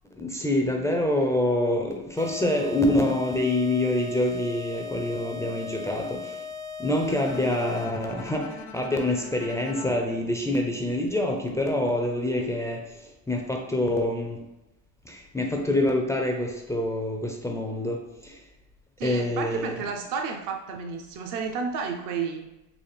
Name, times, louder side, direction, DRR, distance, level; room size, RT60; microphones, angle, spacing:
voice 1, 0.2-6.4 6.8-14.4 15.0-18.4 19.0-19.8, left 1 dB, 10° left, 1 dB, 0.3 m, -26 dB
sound 1, 2.2-8.1, left 6 dB, 75° right, 0.9 m, -38 dB
Bowed string instrument, 7.1-11.2, left 4 dB, 80° left, 0.6 m, -43 dB
voice 2, 19.0-22.5, right 5 dB, 55° right, 3 dB, 0.6 m, -31 dB
4.0 x 2.5 x 3.2 m, 0.94 s
supercardioid pair, 100°, 39 cm